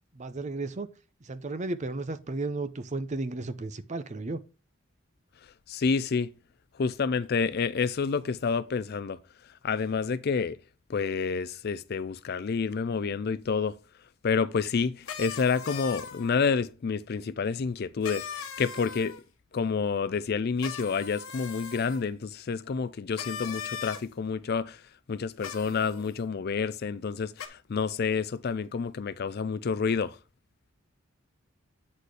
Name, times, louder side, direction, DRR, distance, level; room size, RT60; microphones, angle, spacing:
voice 1, 0.1-0.9 1.2-4.4, right 2 dB, 35° right, 0.6 m, -34 dB
voice 2, 5.7-6.3 6.8-9.2 9.6-10.6 10.9-13.7 14.2-19.2 19.5-24.8 25.1-30.2, left 5 dB, 45° left, 0.4 m, -29 dB
sound 1, 15.1-16.4 18.0-19.2 20.6-22.0 23.1-24.0 25.4-26.1 27.4-27.5, left 7 dB, 75° left, 1.1 m, -39 dB
8.4 x 4.2 x 4.8 m
head